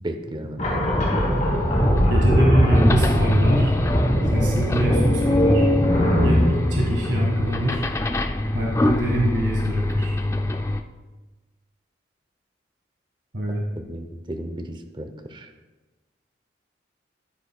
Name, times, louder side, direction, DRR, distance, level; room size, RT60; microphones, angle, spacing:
voice 1, 0.0-0.9 13.8-15.5, right 1 dB, 25° right, 7 dB, 0.7 m, -34 dB
sound 1, 0.6-8.0, equal, 40° left, 2.4 m, -21 dB
sound 2, 0.9-10.8, left 1 dB, 15° left, 0.3 m, -25 dB
voice 2, 2.1-3.7 4.3-5.7 6.1-7.8 8.5-10.2 13.3-13.6, right 1 dB, 70° right, -2 dB, 1.6 m, -25 dB
12.5 x 9.7 x 2.3 m, 1.2 s
head